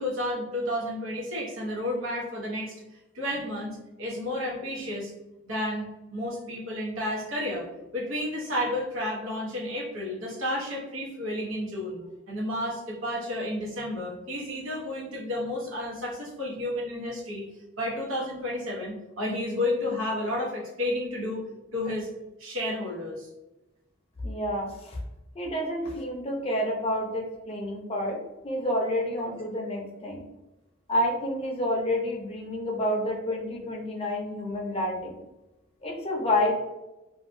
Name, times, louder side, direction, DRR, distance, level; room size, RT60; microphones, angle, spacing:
voice 1, 0.0-2.7 3.1-5.1 5.4-7.7 7.9-12.0 12.3-17.4 17.8-21.4 21.7-22.1 22.4-23.3, left 1 dB, 90° right, -3 dB, 1.0 m, -31 dB
voice 2, 24.2-25.0 25.4-28.2 28.4-30.2 30.9-35.2 35.8-36.5, left 1 dB, 30° left, -1 dB, 0.5 m, -29 dB
2.7 x 2.3 x 2.5 m, 0.98 s
head